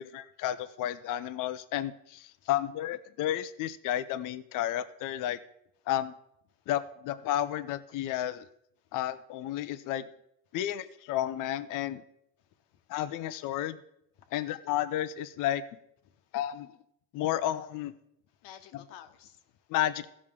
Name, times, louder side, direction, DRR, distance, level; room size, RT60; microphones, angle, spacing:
voice 1, 0.0-5.4 5.9-6.1 6.7-8.4 8.9-10.1 10.5-12.0 12.9-13.8 14.3-15.6 16.3-16.7 17.1-17.9 18.7-18.8 19.7-20.1, left 12 dB, 40° left, 12 dB, 0.7 m, -32 dB
voice 2, 12.4-12.8 14.2-14.6 16.0-16.3 18.4-19.7, left 10 dB, 60° left, 7 dB, 1.2 m, -54 dB
15.5 x 6.2 x 3.7 m, 0.75 s
supercardioid pair, 115°, 48 cm